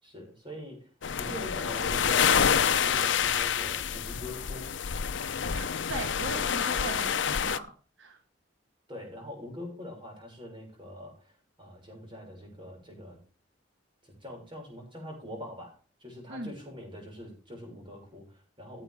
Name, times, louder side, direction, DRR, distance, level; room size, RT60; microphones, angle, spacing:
voice 1, 0.0-0.9 1.2-4.7 8.9-13.2 14.0-15.7 16.0-18.8, left 1 dB, 25° right, 1 dB, 6.2 m, -43 dB
sound 1, 1.0-7.6, left 7 dB, 75° left, 0.6 m, -27 dB
voice 2, 5.5-7.7 8.0-8.2 16.3-16.5, right 2 dB, 80° right, 4 dB, 1.7 m, -38 dB
16.0 x 8.0 x 3.6 m, 0.39 s
head